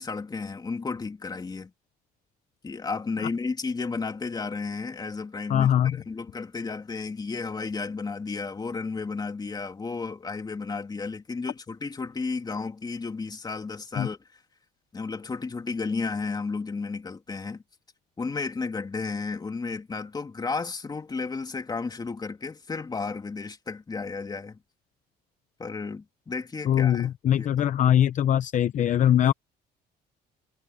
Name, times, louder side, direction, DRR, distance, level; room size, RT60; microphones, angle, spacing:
voice 1, 0.0-1.7 2.6-14.2 14.9-17.6 18.2-24.6 25.6-27.1 27.4-27.7, left 4 dB, 25° left, 2.6 m, -33 dB
voice 2, 5.5-6.0 13.9-14.1 26.7-29.3, left 10 dB, 50° left, 0.7 m, -22 dB
cardioid pair, 110°, 17 cm